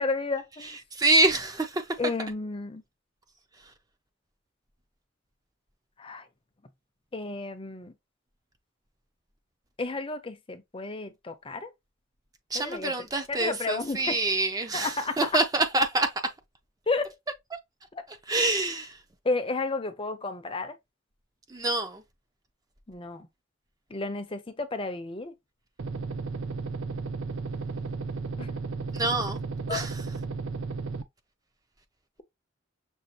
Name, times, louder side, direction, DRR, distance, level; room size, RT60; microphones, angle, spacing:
voice 1, 0.0-0.8 2.0-2.8 6.0-6.2 7.1-7.9 9.8-11.7 12.5-12.9 13.3-14.2 14.7-15.4 16.9-17.1 17.9-18.0 19.2-20.8 22.9-23.3 23.9-25.3 28.4-28.5 29.7-29.8, left 3 dB, 25° left, 0.6 m, -32 dB
voice 2, 0.9-1.9 12.5-16.3 18.3-19.0 21.5-22.0 28.9-29.4 29.7-29.9, right 2 dB, 20° right, 0.5 m, -26 dB
sound 1, 25.8-31.0, right 4 dB, 75° right, 0.5 m, -34 dB
6.3 x 2.4 x 2.8 m
head